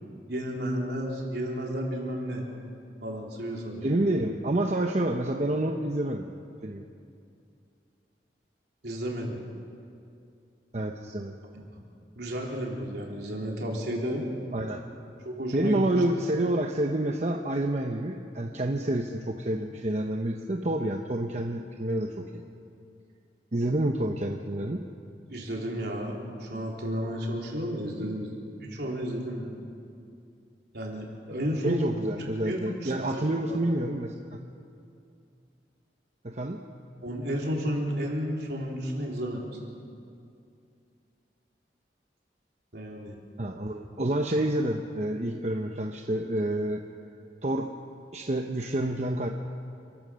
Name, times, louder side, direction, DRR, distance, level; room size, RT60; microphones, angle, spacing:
voice 1, 0.3-2.4 3.0-4.3 8.8-9.4 11.5-11.7 12.2-14.3 15.3-15.8 25.3-29.5 30.7-31.8 32.4-33.6 37.0-39.5 42.7-43.1, equal, 70° right, -1 dB, 3.7 m, -32 dB
voice 2, 3.8-6.3 6.6-6.8 10.7-11.3 14.5-14.8 15.5-22.4 23.5-24.8 31.6-34.4 36.2-36.6 43.4-46.8 47.4-47.8 48.1-49.3, right 1 dB, 40° right, 3 dB, 0.9 m, -28 dB
28.0 x 14.5 x 6.4 m, 2.5 s
head